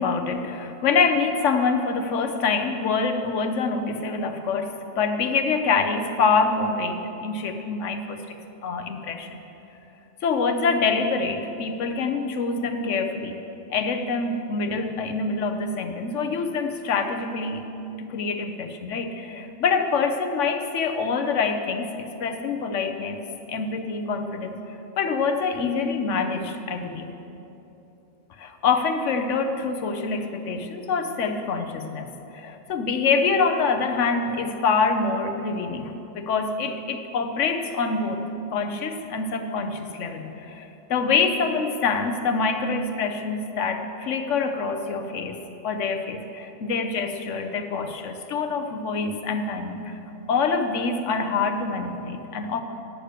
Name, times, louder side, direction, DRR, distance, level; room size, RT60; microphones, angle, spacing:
voice 1, 0.0-8.2 8.6-9.4 10.2-13.4 13.7-17.6 18.0-23.2 23.5-27.1 28.4-38.2 38.5-45.4 45.6-50.0 50.3-52.6, left 4 dB, 85° left, 7 dB, 1.1 m, -25 dB
9.5 x 6.6 x 7.8 m, 3.0 s
omnidirectional pair, 1.2 m